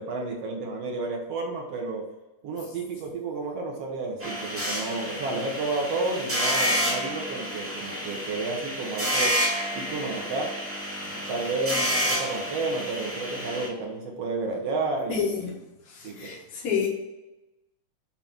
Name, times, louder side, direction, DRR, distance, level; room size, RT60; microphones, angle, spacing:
voice 1, 0.0-2.0 2.4-9.4 9.7-10.5 11.3-15.5 16.0-16.3, right 3 dB, 60° right, 1 dB, 1.8 m, -31 dB
sound 1, 4.2-13.7, equal, 10° right, 0.7 m, -29 dB
voice 2, 15.1-15.5 15.8-16.9, left 7 dB, 55° left, -3 dB, 2.6 m, -30 dB
7.2 x 3.8 x 5.9 m, 1.0 s
omnidirectional pair, 3.7 m